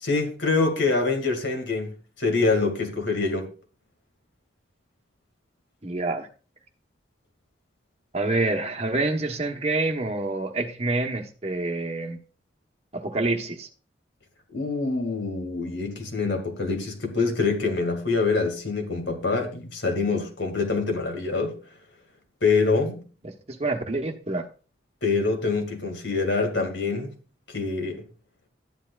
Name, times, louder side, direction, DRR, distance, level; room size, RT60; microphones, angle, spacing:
voice 1, 0.0-1.9 2.2-3.5 14.5-21.5 22.4-23.0 25.0-27.1 27.5-28.0, left 4 dB, 80° left, 2.3 m, -25 dB
voice 2, 5.8-6.3 8.1-12.2 12.9-13.7 23.5-24.5, right 2 dB, 35° right, 1.1 m, -27 dB
12.5 x 10.0 x 2.5 m
head